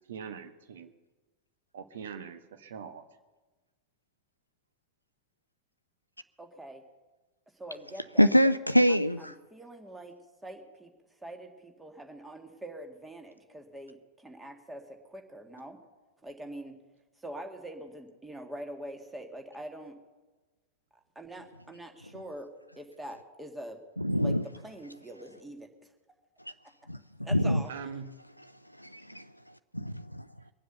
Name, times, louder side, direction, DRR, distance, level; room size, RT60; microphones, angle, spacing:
voice 1, 0.1-0.9 1.7-3.0 27.7-28.1, right 6 dB, 60° right, 1.3 m, -42 dB
voice 2, 6.4-6.8 7.6-8.5 8.9-10.2 10.4-10.9 11.2-15.8 16.2-16.8 17.2-20.0 21.2-22.5 22.8-23.8 24.2-24.4 24.6-25.7 27.2-27.7, right 1 dB, 10° right, 2.0 m, -44 dB
voice 3, 8.2-9.3 24.0-24.4 26.9-27.0 27.3-27.6 28.8-29.2 29.7-30.2, equal, 90° left, 0.4 m, -24 dB
23.0 x 7.8 x 6.8 m
figure-of-eight pair, 90°, 0 cm